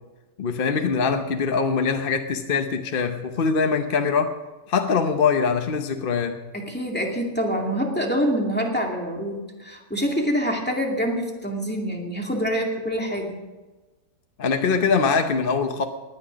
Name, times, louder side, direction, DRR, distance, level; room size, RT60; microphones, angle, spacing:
voice 1, 0.4-4.4 4.7-6.4 14.4-15.8, left 5 dB, 45° left, 6 dB, 0.9 m, -23 dB
voice 2, 6.5-13.4, equal, 5° left, 0 dB, 2.2 m, -26 dB
18.5 x 10.0 x 5.2 m, 1.2 s
omnidirectional pair, 1.6 m